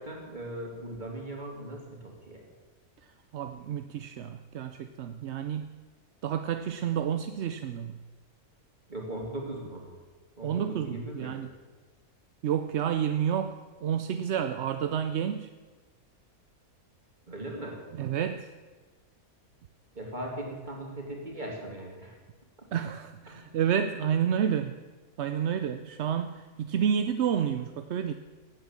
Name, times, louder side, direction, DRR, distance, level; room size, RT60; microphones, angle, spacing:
voice 1, 0.0-2.4 8.9-9.9 10.4-11.3 17.3-17.8 19.9-22.2 22.6-22.7 23.3-23.5, right 1 dB, 30° right, 0 dB, 3.1 m, -39 dB
voice 2, 3.3-5.7 6.2-8.0 10.4-11.5 12.4-15.5 17.9-18.5 22.7-24.8 25.2-28.1, right 8 dB, 60° right, 9 dB, 0.8 m, -30 dB
16.0 x 9.0 x 7.3 m, 1.3 s
omnidirectional pair, 1.6 m